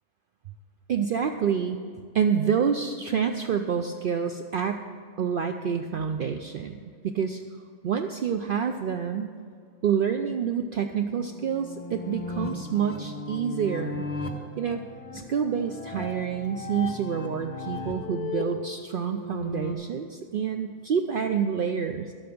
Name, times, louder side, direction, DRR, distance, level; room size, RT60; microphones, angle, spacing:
voice 1, 0.9-1.8 2.1-4.8 5.2-7.4 7.8-9.3 9.8-14.1 14.6-14.8 15.1-22.1, right 7 dB, 75° right, 6 dB, 0.4 m, -28 dB
sound 1, 10.9-19.7, left 3 dB, 25° left, 1.1 m, -36 dB
12.0 x 8.5 x 6.1 m, 2.1 s
omnidirectional pair, 1.5 m